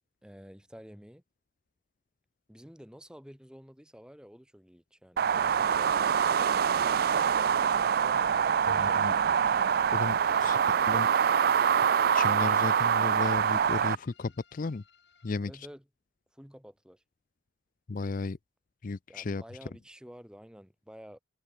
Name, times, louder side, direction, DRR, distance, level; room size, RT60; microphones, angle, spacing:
voice 1, 0.2-1.2 2.5-6.9 7.9-9.7 10.0-10.6 15.4-15.8 16.3-17.0 19.1-21.2, equal, 5° right, 2.1 m, -51 dB
sound 1, 5.2-14.0, right 7 dB, 50° right, 0.4 m, -25 dB
sound 2, 5.7-15.3, left 6 dB, 60° left, 3.8 m, -62 dB
voice 2, 8.8-9.1 9.9-10.6 10.9-11.1 12.1-14.8 15.2-15.5 17.9-18.4 18.8-19.4, left 3 dB, 45° left, 0.5 m, -34 dB
head